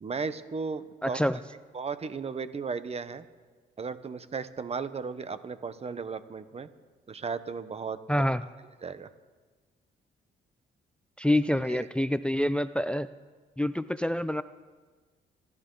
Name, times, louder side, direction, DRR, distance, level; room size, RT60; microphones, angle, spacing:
voice 1, 0.0-1.4 1.7-3.2 3.8-6.7 7.1-8.0 8.8-9.1 11.6-11.9, right 5 dB, 30° right, 13 dB, 0.9 m, -35 dB
voice 2, 1.0-1.4 8.1-8.4 11.2-13.1 13.6-14.4, left 1 dB, 5° left, 14 dB, 0.4 m, -26 dB
26.5 x 12.0 x 3.9 m, 1.4 s
cardioid pair, 90°, 20 cm